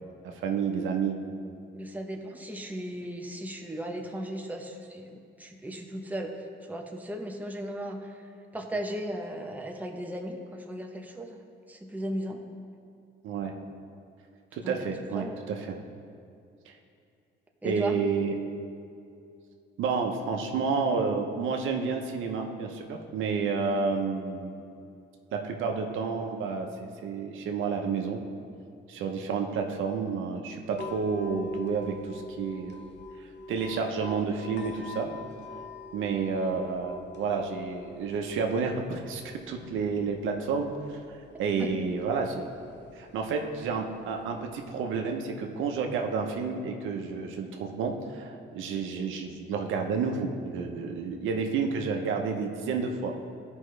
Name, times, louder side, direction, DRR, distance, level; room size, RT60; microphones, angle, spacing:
voice 1, 0.2-1.2 13.2-13.5 14.5-15.8 16.7-16.8 17.6-18.4 19.8-24.6 25.3-28.2 28.9-32.8 33.5-35.1 35.9-40.7 41.4-42.4 42.9-53.1, right 5 dB, 80° right, 3 dB, 0.8 m, -30 dB
voice 2, 1.7-6.3 6.7-11.4 11.7-12.4 14.6-14.9 15.1-15.4 17.6-18.0 41.6-41.7, right 1 dB, 10° right, 2 dB, 0.9 m, -36 dB
sound 1, 30.7-44.7, left 2 dB, 60° left, 0.8 m, -45 dB
13.0 x 5.3 x 3.3 m, 2.5 s
cardioid pair, 90°, 20 cm